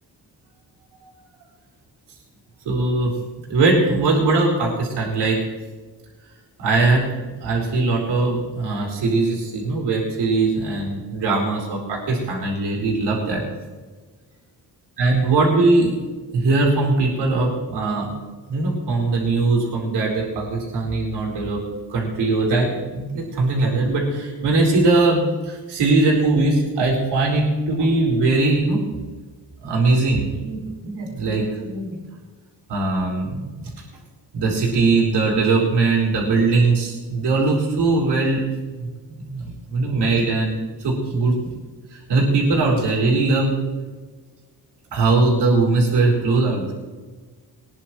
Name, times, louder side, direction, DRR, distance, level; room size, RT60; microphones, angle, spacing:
voice 1, 2.6-3.1 3.5-5.4 6.6-7.0 7.4-13.4 15.0-15.9 16.3-18.1 18.5-21.6 21.9-28.9 29.6-32.0 32.7-33.7 34.3-38.4 38.8-38.9 39.2-41.5 41.9-43.5 44.9-46.7, right 3 dB, 80° right, -3 dB, 4.3 m, -20 dB
21.0 x 10.5 x 3.2 m, 1.4 s
cardioid pair, 65°, 40 cm